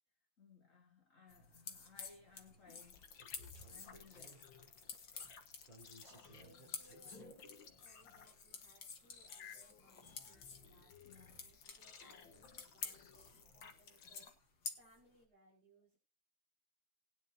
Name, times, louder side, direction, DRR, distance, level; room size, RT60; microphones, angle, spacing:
voice 1, 0.4-3.1 3.5-4.5 11.0-11.4 13.2-13.3, left 5 dB, 40° left, 2 dB, 2.2 m, -62 dB
sound 1, 1.3-15.1, left 5 dB, 60° left, 2.3 m, -52 dB
sound 2, 1.4-13.8, right 2 dB, 25° right, 3.3 m, -67 dB
sound 3, 2.7-14.3, left 6 dB, 80° left, 2.1 m, -58 dB
voice 2, 6.0-16.0, right 1 dB, 50° right, -5 dB, 5.9 m, -68 dB
20.5 x 10.0 x 2.8 m, 0.30 s
omnidirectional pair, 2.1 m